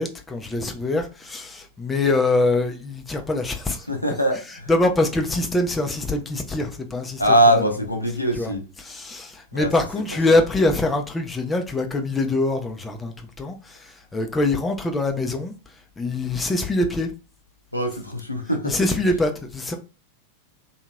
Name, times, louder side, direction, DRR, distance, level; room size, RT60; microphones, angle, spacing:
voice 1, 0.0-3.9 4.7-7.2 8.4-8.5 8.8-17.1 18.6-19.7, left 2 dB, 10° left, 0.5 m, -24 dB
voice 2, 3.9-4.7 7.2-8.6 9.5-9.7 10.3-10.4 17.7-18.8, equal, 85° left, 0.5 m, -21 dB
2.8 x 2.7 x 2.2 m
figure-of-eight pair, 90°, 0 cm